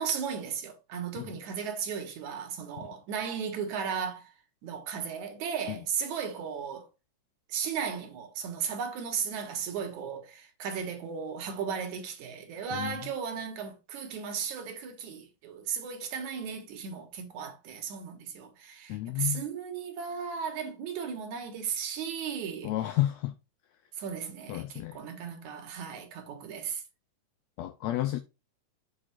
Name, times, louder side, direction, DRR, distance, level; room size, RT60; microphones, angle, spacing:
voice 1, 0.0-4.3 4.6-6.9 7.5-22.7 24.0-26.8, right 7 dB, 70° right, 2.6 m, -35 dB
voice 2, 18.9-19.4 22.6-23.3 24.5-25.0 27.6-28.2, left 14 dB, 90° left, 1.5 m, -31 dB
7.4 x 4.3 x 4.3 m
omnidirectional pair, 3.6 m